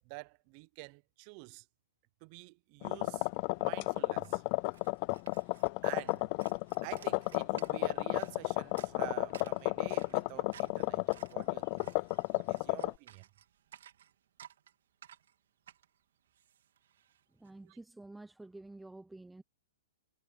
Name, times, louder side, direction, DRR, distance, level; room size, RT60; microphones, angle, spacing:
voice 1, 0.0-1.7 2.2-3.3 3.6-4.4 5.8-6.3 6.8-11.0 11.3-11.9 12.3-13.3 17.6-17.8, right 29 dB, 35° right, 0.7 m, -48 dB
sound 1, 2.8-12.9, left 30 dB, 35° left, 0.4 m, -32 dB
sound 2, 3.4-3.5 3.7-17.5, right 10 dB, 70° right, 3.1 m, -58 dB
voice 2, 17.3-19.4, right 2 dB, 5° right, 0.7 m, -50 dB
hypercardioid pair, 145°, 0 cm